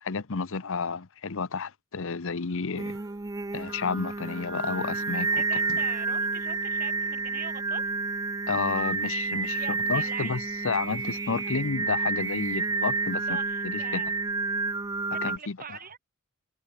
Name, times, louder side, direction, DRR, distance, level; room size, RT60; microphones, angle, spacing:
voice 1, 0.0-3.0 3.5-5.4 5.7-5.8 8.5-13.4 13.6-14.0 15.2-15.8, left 4 dB, 65° left, 0.9 m, -31 dB
Singing, 2.8-15.4, right 4 dB, 15° right, 0.5 m, -30 dB
sound 1, 2.9-7.6, right 5 dB, 75° right, 2.1 m, -54 dB
voice 2, 5.4-7.8 9.5-10.4 11.4-11.5 13.3-14.1 15.1-16.0, right 7 dB, 40° right, 1.3 m, -42 dB
head